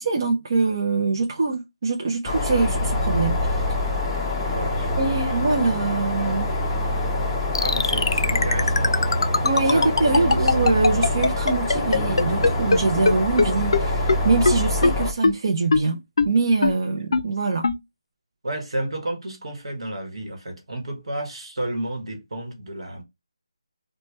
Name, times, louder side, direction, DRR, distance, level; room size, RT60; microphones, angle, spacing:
voice 1, 0.0-3.6 5.0-6.5 9.4-17.7, right 3 dB, 45° right, 0.5 m, -23 dB
sound 1, 2.3-15.1, left 2 dB, 10° left, 0.5 m, -25 dB
voice 2, 4.5-5.6 7.6-9.3 9.6-10.6 18.4-23.0, right 1 dB, 70° right, 1.1 m, -32 dB
sound 2, 7.6-12.8 13.1-13.2 13.4-13.5 13.7-13.8 14.1-14.2 14.5-14.6 14.8-14.9 15.2-15.3 15.7-15.8 16.2-16.3 16.6-16.7 17.1-17.2 17.6-17.8, left 3 dB, 60° left, 0.4 m, -18 dB
3.1 x 2.2 x 3.0 m
figure-of-eight pair, 160°, 3 cm